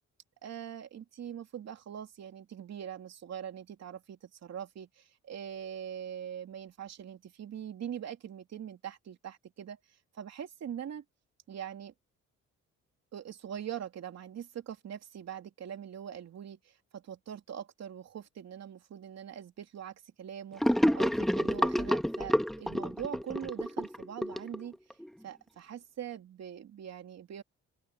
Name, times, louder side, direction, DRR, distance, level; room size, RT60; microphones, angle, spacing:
voice 1, 0.4-9.8 10.1-11.0 11.5-11.9 13.1-24.8 25.2-27.4, right 9 dB, 60° right, 3.1 m, -42 dB
Gurgling / Sink (filling or washing), 20.6-25.1, equal, ahead, 1.3 m, -29 dB
open air
cardioid pair, 90°, 30 cm